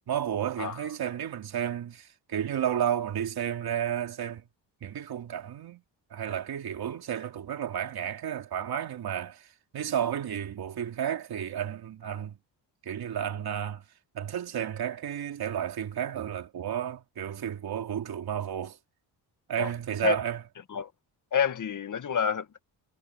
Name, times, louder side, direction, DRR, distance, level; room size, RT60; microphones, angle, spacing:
voice 1, 0.1-4.4 4.8-5.8 6.1-9.5 9.7-12.4 12.8-13.8 14.1-18.8 19.5-20.4, right 9 dB, 65° right, 3.0 m, -32 dB
voice 2, 21.3-22.6, left 8 dB, 50° left, 1.9 m, -28 dB
cardioid pair, 110°, 40 cm